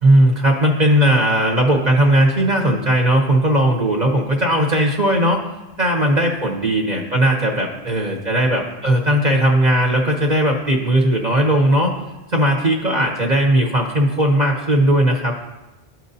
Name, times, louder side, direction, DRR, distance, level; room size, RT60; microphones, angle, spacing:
voice 1, 0.0-5.4 5.8-11.9 12.3-15.3, right 1 dB, 45° right, 0 dB, 0.8 m, -17 dB
12.5 x 4.5 x 2.7 m, 1.0 s
omnidirectional pair, 1.0 m